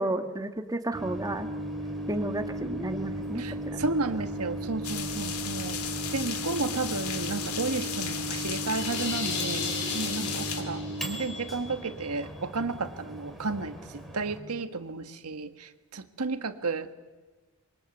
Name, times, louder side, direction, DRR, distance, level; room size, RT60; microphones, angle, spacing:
voice 1, 0.0-1.5 2.1-3.8 5.2-5.3 10.2-10.4, right 1 dB, 15° right, 6 dB, 1.4 m, -32 dB
Microwave oven, 0.9-14.4, right 1 dB, ahead, 3.2 m, -36 dB
voice 2, 3.4-5.8 6.1-13.7 14.1-16.9, right 3 dB, 85° right, 9 dB, 1.5 m, -32 dB
sound 1, 4.8-10.6, left 8 dB, 75° left, 2.6 m, -35 dB
sound 2, 8.7-11.3, left 3 dB, 55° left, 5.8 m, -35 dB
25.5 x 22.5 x 7.9 m, 1.3 s
head